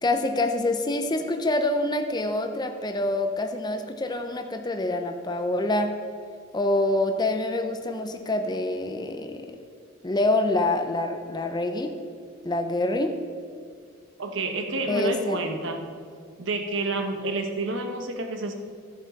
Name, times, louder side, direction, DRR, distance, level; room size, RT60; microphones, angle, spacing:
voice 1, 0.0-5.9 6.5-9.6 10.0-11.9 12.4-13.2 14.9-15.4, left 2 dB, 20° left, 5 dB, 0.6 m, -26 dB
voice 2, 14.2-15.8 16.4-18.6, right 2 dB, 65° right, 4 dB, 1.1 m, -29 dB
14.5 x 7.3 x 4.0 m, 2.1 s
head